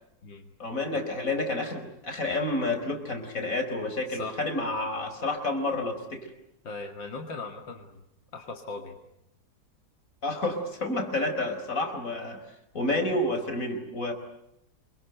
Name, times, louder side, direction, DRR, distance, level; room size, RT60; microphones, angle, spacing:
voice 1, 0.6-6.3 10.2-12.4 12.7-14.1, left 2 dB, 45° left, 6 dB, 5.1 m, -29 dB
voice 2, 4.1-4.4 6.6-8.0 8.3-9.0, left 3 dB, 80° left, 4 dB, 2.8 m, -39 dB
27.5 x 24.5 x 8.0 m, 0.83 s
omnidirectional pair, 2.0 m